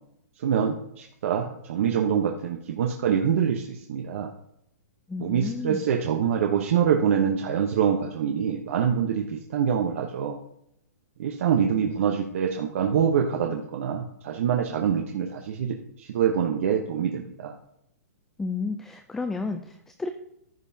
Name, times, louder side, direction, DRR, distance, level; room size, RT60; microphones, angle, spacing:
voice 1, 0.4-4.3 5.2-10.4 11.2-17.6, right 8 dB, 55° right, 2 dB, 1.0 m, -25 dB
voice 2, 5.1-5.9 18.4-20.1, left 4 dB, 5° left, 7 dB, 0.4 m, -32 dB
14.5 x 5.4 x 2.8 m, 0.76 s
hypercardioid pair, 155°, 9 cm